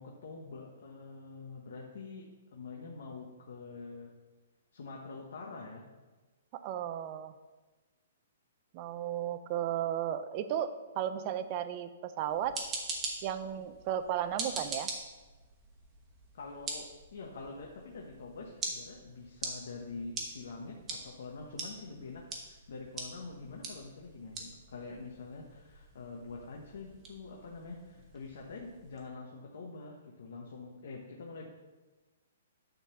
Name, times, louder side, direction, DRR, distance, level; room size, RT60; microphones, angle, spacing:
voice 1, 0.0-4.1 4.7-5.9 14.3-14.6 16.3-31.5, left 3 dB, 65° left, -1 dB, 1.2 m, -46 dB
voice 2, 6.5-7.3 8.7-12.6 13.2-14.9, right 10 dB, 30° right, 11 dB, 0.5 m, -34 dB
sound 1, 12.3-29.1, right 3 dB, 15° right, 1.1 m, -44 dB
9.5 x 4.0 x 6.8 m, 1.2 s
hypercardioid pair, 165°, 0 cm